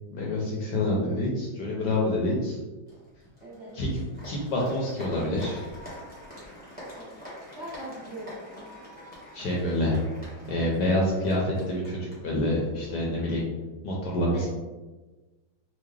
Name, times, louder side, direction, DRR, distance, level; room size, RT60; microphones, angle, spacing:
voice 1, 0.1-2.6 3.7-5.6 9.3-10.0 10.5-13.4 13.8-14.5, left 1 dB, 70° left, -3 dB, 1.1 m, -27 dB
Applause, 2.9-13.0, equal, 5° left, 0.8 m, -45 dB
voice 2, 3.4-3.8 6.9-7.1 7.5-8.6 14.3-14.5, right 1 dB, 65° right, -8 dB, 0.6 m, -41 dB
4.5 x 2.1 x 3.1 m, 1.2 s
omnidirectional pair, 2.4 m